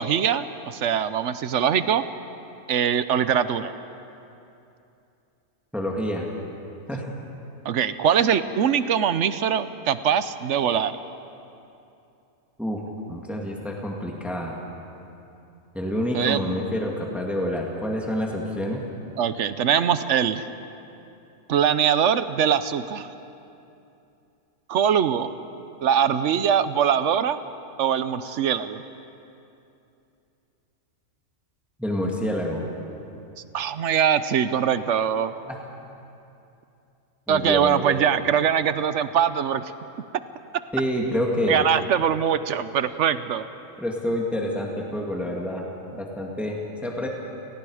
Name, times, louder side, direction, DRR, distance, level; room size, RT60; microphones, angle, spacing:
voice 1, 0.0-2.0 2.7-3.7 7.6-10.9 16.1-16.4 19.2-20.4 21.5-23.1 24.7-25.3 25.8-27.4 27.8-28.8 33.5-35.3 37.3-39.7 41.5-43.4, right 8 dB, 60° right, 13 dB, 0.9 m, -22 dB
voice 2, 5.7-6.3 6.9-7.1 12.6-12.8 13.1-14.6 15.7-18.8 31.8-32.6 35.4-35.6 37.3-38.0 40.7-41.7 43.8-45.6 45.9-47.1, left 1 dB, ahead, -1 dB, 2.1 m, -28 dB
29.5 x 18.5 x 4.9 m, 2.8 s
omnidirectional pair, 1.5 m